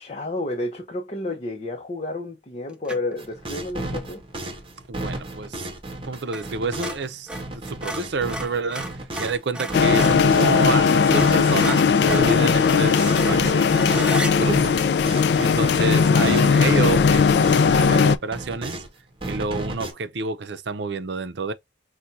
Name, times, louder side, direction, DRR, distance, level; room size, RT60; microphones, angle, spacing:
voice 1, 0.0-4.2 9.2-9.3, left 2 dB, 35° left, 0.7 m, -31 dB
sound 1, 2.9-3.2 6.3-6.5 6.7-10.3 10.7-10.8 11.1-14.3, right 1 dB, 5° right, 0.6 m, -33 dB
sound 2, 3.2-9.4 9.7-16.6 16.8-18.9 19.2-19.9, right 1 dB, 30° right, 0.9 m, -34 dB
voice 2, 4.9-5.6 6.0-7.3 7.6-8.9 9.2-14.8 15.3-18.8 19.3-21.5, right 3 dB, 70° right, 0.6 m, -28 dB
sound 3, 9.7-18.2, left 5 dB, 60° left, 0.3 m, -18 dB
5.8 x 2.2 x 2.6 m
head